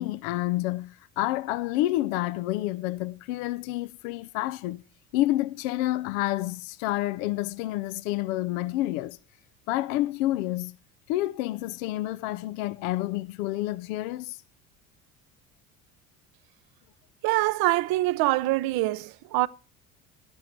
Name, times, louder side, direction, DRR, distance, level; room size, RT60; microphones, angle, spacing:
voice 1, 0.0-4.8 5.1-9.2 9.7-10.8 11.1-14.4, left 16 dB, 70° left, 0.6 m, -29 dB
voice 2, 17.2-19.5, right 18 dB, 60° right, 0.7 m, -24 dB
11.5 x 11.5 x 4.4 m
hypercardioid pair, 65°, 42 cm